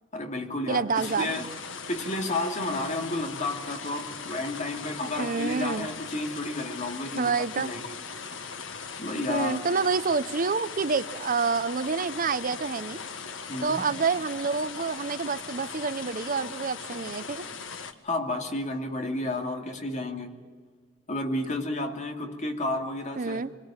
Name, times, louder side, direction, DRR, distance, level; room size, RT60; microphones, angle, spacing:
voice 1, 0.1-1.4 1.9-8.0 8.4-8.5 8.7-9.6 13.5-13.9 18.0-20.3 21.1-23.4, left 2 dB, 40° left, 2.6 m, -32 dB
voice 2, 0.7-1.4 5.2-5.9 7.2-7.7 9.3-13.0 13.6-17.5 23.2-23.5, right 4 dB, 45° right, 0.7 m, -28 dB
sound 1, 0.9-17.9, left 5 dB, 75° left, 1.6 m, -39 dB
26.0 x 22.0 x 8.8 m
head